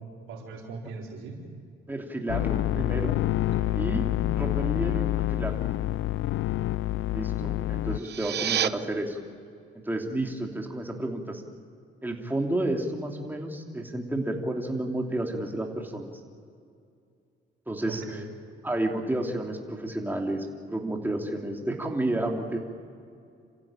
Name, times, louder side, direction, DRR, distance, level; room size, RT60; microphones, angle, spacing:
voice 1, 0.0-1.5 3.6-4.0 17.9-18.3, right 3 dB, 90° right, 0 dB, 4.2 m, -40 dB
voice 2, 1.9-3.1 3.7-4.0 4.3-5.5 7.1-9.2 9.8-11.4 12.0-16.1 17.7-18.2 18.6-22.6, right 1 dB, 10° right, 1 dB, 2.9 m, -31 dB
sound 1, 2.3-8.0, left 14 dB, 75° left, 0.5 m, -27 dB
sound 2, 7.9-8.7, right 10 dB, 55° right, 0.8 m, -28 dB
27.5 x 15.5 x 8.9 m, 2.4 s
cardioid pair, 90°, 20 cm